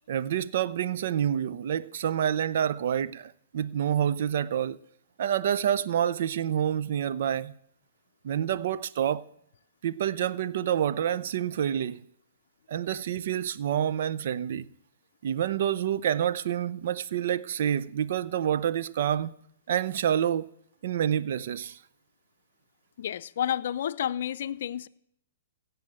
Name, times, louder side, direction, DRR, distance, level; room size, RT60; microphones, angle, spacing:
voice 1, 0.1-4.8 5.2-7.5 8.2-9.2 9.8-12.0 12.7-14.7 15.2-19.3 19.7-20.5 20.8-21.8, right 9 dB, 60° right, 0.7 m, -28 dB
voice 2, 23.0-24.9, left 10 dB, 60° left, 0.6 m, -30 dB
16.0 x 7.0 x 7.8 m
hypercardioid pair, 135°, 0 cm